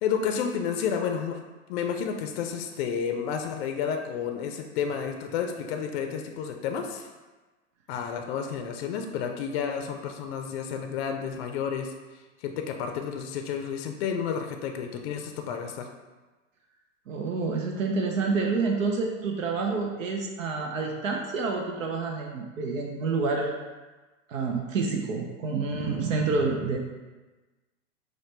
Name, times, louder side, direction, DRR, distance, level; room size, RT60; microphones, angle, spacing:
voice 1, 0.0-1.4 1.7-7.1 7.9-11.9 12.4-15.9, left 7 dB, 55° left, 4 dB, 0.5 m, -31 dB
voice 2, 17.1-23.5 24.3-26.8, right 4 dB, 75° right, 1 dB, 0.7 m, -28 dB
4.8 x 2.2 x 3.3 m, 1.2 s
hypercardioid pair, 110°, 39 cm